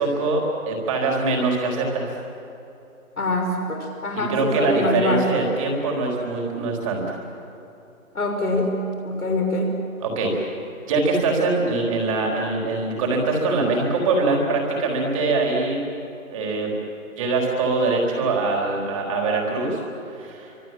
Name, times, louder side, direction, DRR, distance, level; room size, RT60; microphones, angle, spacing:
voice 1, 0.0-2.1 4.1-7.2 10.0-10.4 10.9-15.8 16.3-16.7 17.2-19.8 20.2-20.5, right 3 dB, 20° right, 0 dB, 4.2 m, -23 dB
voice 2, 3.2-5.3 8.1-8.7 9.0-9.8, left 2 dB, 85° left, 2 dB, 6.1 m, -24 dB
29.0 x 25.5 x 7.8 m, 2.9 s
hypercardioid pair, 165°, 43 cm